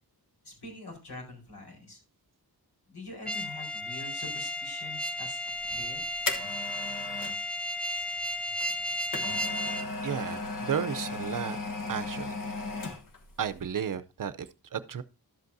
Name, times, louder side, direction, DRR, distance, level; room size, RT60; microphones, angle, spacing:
voice 1, 0.4-2.0 2.9-5.4 5.7-6.0, left 2 dB, 75° left, 4.8 m, -44 dB
sound 1, 3.3-9.9, left 1 dB, 5° left, 0.4 m, -34 dB
sound 2, 5.7-7.4 8.6-13.3 13.6-13.7, left 3 dB, 55° left, 1.2 m, -36 dB
voice 2, 10.0-11.6 11.9-12.3 13.4-15.0, right 8 dB, 55° right, 0.6 m, -33 dB
12.5 x 8.0 x 2.7 m
wide cardioid pair, 145°, 39 cm